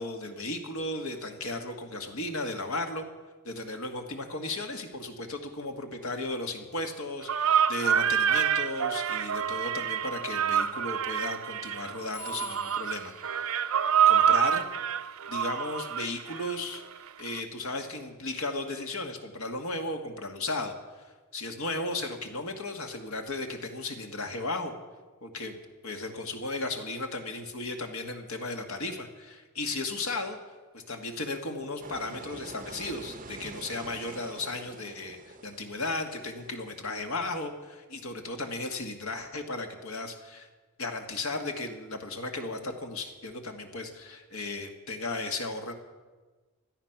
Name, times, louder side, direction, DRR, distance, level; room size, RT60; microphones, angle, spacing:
voice 1, 0.0-3.1 3.4-13.5 14.1-14.7 15.3-16.8 17.2-24.7 25.2-25.6 25.8-30.4 30.7-40.5 40.8-45.7, left 2 dB, 80° left, 5 dB, 1.8 m, -35 dB
sound 1, 7.3-16.7, right 8 dB, 75° right, 0.5 m, -26 dB
Telephone, 12.1-14.6, left 8 dB, 55° left, 6.3 m, -48 dB
sound 2, 31.8-37.3, right 4 dB, 40° right, 0.6 m, -46 dB
17.0 x 12.0 x 6.0 m, 1.3 s
head